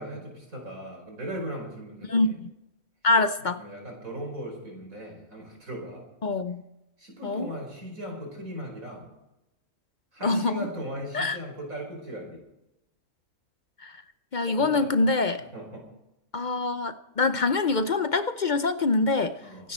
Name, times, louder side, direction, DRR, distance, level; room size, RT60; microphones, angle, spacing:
voice 1, 0.0-2.3 3.6-6.1 7.0-9.1 10.1-12.4 14.5-14.9 15.5-15.9 19.4-19.7, right 1 dB, 70° right, 1 dB, 5.4 m, -38 dB
voice 2, 2.1-2.5 3.0-3.6 6.2-6.6 7.2-7.5 10.2-10.7 11.1-11.4 13.8-14.0 14.3-15.4 16.3-19.4 19.6-19.7, left 3 dB, 50° left, 10 dB, 0.6 m, -25 dB
26.5 x 10.0 x 4.3 m, 0.92 s
omnidirectional pair, 1.5 m